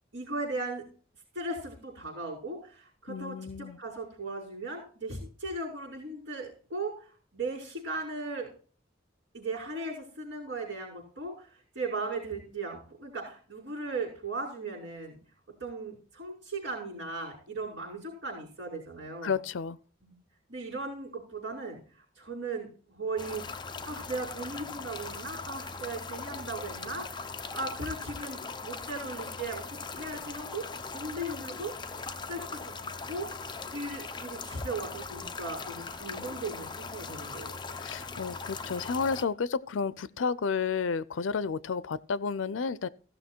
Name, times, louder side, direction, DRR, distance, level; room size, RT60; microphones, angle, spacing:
voice 1, 0.1-0.8 1.3-8.5 9.3-11.5 11.7-15.2 15.6-19.3 20.0-20.1 20.5-21.8 22.2-23.5 23.9-30.6 30.9-31.7 32.0-33.3 33.7-37.5, right 3 dB, 65° right, 5.6 m, -37 dB
voice 2, 3.1-3.8 19.2-19.8 37.8-42.9, left 5 dB, 85° left, 0.5 m, -31 dB
sound 1, 23.2-39.2, left 4 dB, 25° left, 0.8 m, -40 dB
15.5 x 6.5 x 4.5 m
head